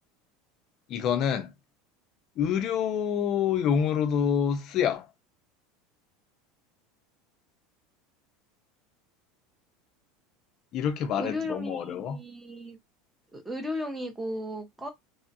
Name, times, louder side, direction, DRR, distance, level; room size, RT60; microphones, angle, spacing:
voice 1, 0.9-1.5 2.4-5.1 10.7-12.2, left 8 dB, 35° left, 0.4 m, -27 dB
voice 2, 11.2-12.8 13.3-14.9, left 1 dB, 5° right, 0.7 m, -35 dB
3.0 x 2.3 x 2.7 m
supercardioid pair, 165°, 0 cm